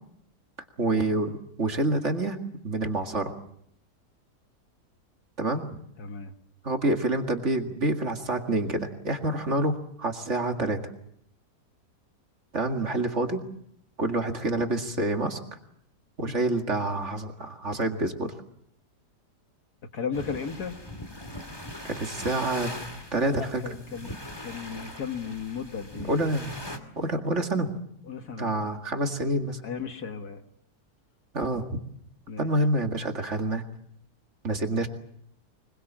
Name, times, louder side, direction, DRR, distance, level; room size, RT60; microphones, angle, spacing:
voice 1, 0.8-2.4 2.6-3.3 5.4-5.8 6.6-10.8 12.5-13.4 14.0-15.4 16.2-18.3 21.8-22.8 23.1-23.6 26.1-26.5 27.0-27.7 28.4-29.6 31.3-31.8 32.4-33.6 34.4-34.9, right 2 dB, 45° right, 5 dB, 2.3 m, -27 dB
voice 2, 6.0-6.3 19.9-20.8 23.3-24.2 24.4-26.1 28.1-28.8 29.6-30.4 32.3-32.5, left 6 dB, 65° left, 7 dB, 2.1 m, -35 dB
sound 1, 20.1-26.8, left 1 dB, 15° left, 2.3 m, -40 dB
24.5 x 22.5 x 7.4 m, 0.71 s
omnidirectional pair, 1.8 m